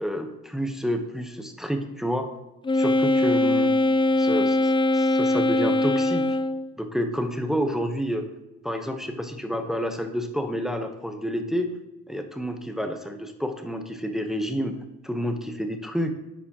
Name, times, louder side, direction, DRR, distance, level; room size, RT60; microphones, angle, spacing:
voice 1, 0.0-2.3 2.7-3.7 4.2-6.4 6.8-8.3 8.6-11.7 12.1-14.8 15.0-16.1, equal, ahead, 5 dB, 0.9 m, -29 dB
Wind instrument woodwind instrument, 2.6-6.7, left 2 dB, 15° left, 0.4 m, -21 dB
10.0 x 7.0 x 2.9 m, 0.99 s
cardioid pair, 90°, 30 cm